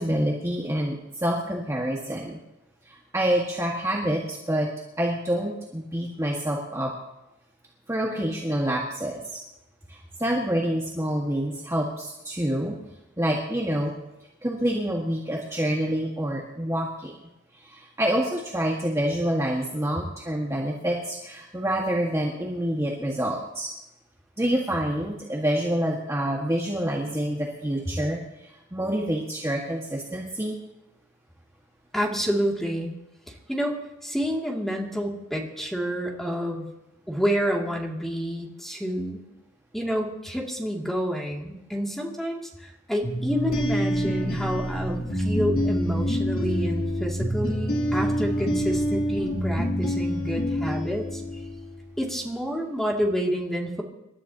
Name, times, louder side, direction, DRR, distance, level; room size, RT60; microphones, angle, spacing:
voice 1, 0.0-2.4 2.8-4.7 5.0-6.9 7.9-9.4 9.9-12.8 13.2-13.9 14.4-17.1 17.5-23.7 24.4-30.6, right 1 dB, 15° right, -3 dB, 1.7 m, -27 dB
voice 2, 31.9-32.9 33.3-33.8 34.0-36.7 37.1-39.2 39.7-51.2 52.0-53.8, equal, ahead, -1 dB, 2.6 m, -29 dB
sound 1, 43.0-51.7, equal, 50° left, 3.5 m, -26 dB
27.5 x 13.0 x 3.0 m, 0.95 s
head